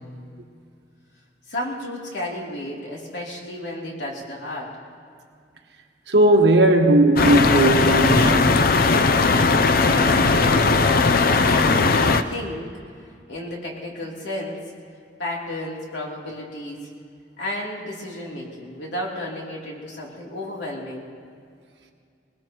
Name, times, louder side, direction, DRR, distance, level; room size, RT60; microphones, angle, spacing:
voice 1, 1.5-4.8 9.8-12.7 13.3-14.6 15.2-16.9 17.4-21.1, left 1 dB, 90° left, 3.2 m, -32 dB
voice 2, 6.1-8.7, right 1 dB, 75° right, 1.5 m, -17 dB
sound 1, 7.2-12.2, left 4 dB, 55° left, 0.6 m, -18 dB
20.5 x 20.0 x 3.0 m
head